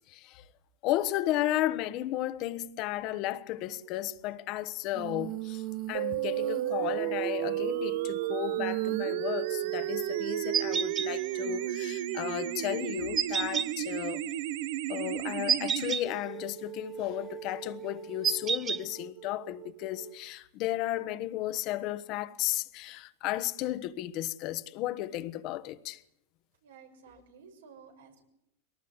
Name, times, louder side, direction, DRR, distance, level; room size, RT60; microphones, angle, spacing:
voice 1, 0.1-0.4 0.8-14.2 14.9-26.0, left 14 dB, 50° left, 1.3 m, -34 dB
Female singing, 4.9-13.8 16.0-20.2, right 10 dB, 40° right, 2.0 m, -41 dB
sound 1, 5.9-15.9, right 15 dB, 65° right, 1.0 m, -33 dB
sound 2, 10.5-11.1 13.2-13.7 15.5-16.0 18.2-18.8, right 7 dB, 25° right, 0.9 m, -28 dB
voice 2, 26.6-28.2, right 6 dB, 85° right, 6.0 m, -54 dB
22.0 x 18.5 x 8.2 m
hypercardioid pair, 115°, 0 cm